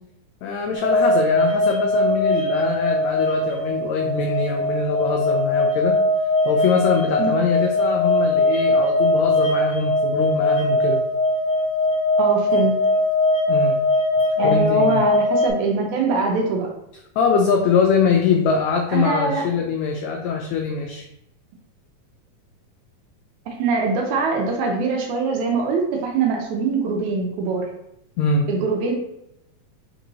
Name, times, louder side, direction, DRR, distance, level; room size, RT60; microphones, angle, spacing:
voice 1, 0.4-5.9 6.4-11.0 13.5-13.7 14.4-15.0 17.2-21.1 28.2-28.5, left 5 dB, 85° left, 2 dB, 1.5 m, -22 dB
sound 1, 0.7-15.5, left 1 dB, 70° left, 1.5 m, -20 dB
voice 2, 12.2-12.7 14.4-16.7 18.9-19.5 23.5-27.7 28.5-28.9, right 4 dB, 75° right, 1 dB, 1.9 m, -23 dB
4.5 x 4.1 x 2.7 m, 0.80 s
omnidirectional pair, 3.7 m